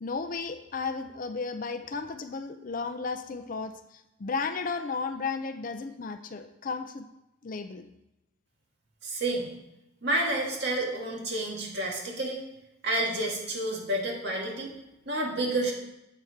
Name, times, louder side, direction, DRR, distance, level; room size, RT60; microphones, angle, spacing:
voice 1, 0.0-7.1 7.4-7.9, left 4 dB, 40° left, 8 dB, 0.4 m, -34 dB
voice 2, 9.0-9.5 10.0-12.4 12.8-14.7 15.1-15.7, right 1 dB, 55° right, -2 dB, 1.9 m, -29 dB
7.8 x 4.7 x 5.7 m, 0.90 s
head